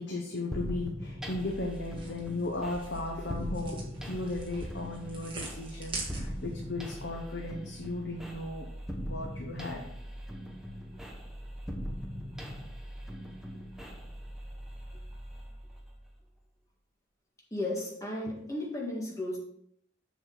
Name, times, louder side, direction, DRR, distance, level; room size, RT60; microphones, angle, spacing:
voice 1, 0.0-8.6 9.0-9.8, left 2 dB, 65° left, 0 dB, 1.1 m, -36 dB
sound 1, 0.5-16.1, equal, ahead, 0.9 m, -41 dB
sound 2, 1.4-6.6, right 2 dB, 25° right, 1.6 m, -43 dB
voice 2, 17.5-19.4, left 1 dB, 15° left, -2 dB, 1.7 m, -34 dB
7.2 x 6.3 x 3.9 m, 0.71 s
head